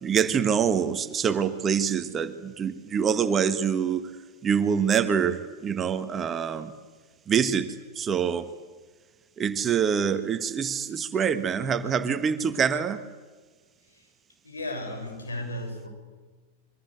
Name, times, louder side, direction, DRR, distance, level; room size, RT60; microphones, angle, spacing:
voice 1, 0.0-4.2 4.4-6.7 7.3-8.5 9.4-13.0, right 7 dB, 25° right, 10 dB, 1.6 m, -25 dB
voice 2, 14.4-15.9, left 1 dB, 75° left, 5 dB, 6.8 m, -35 dB
28.0 x 24.0 x 7.9 m, 1.4 s
figure-of-eight pair, 90°, 0 cm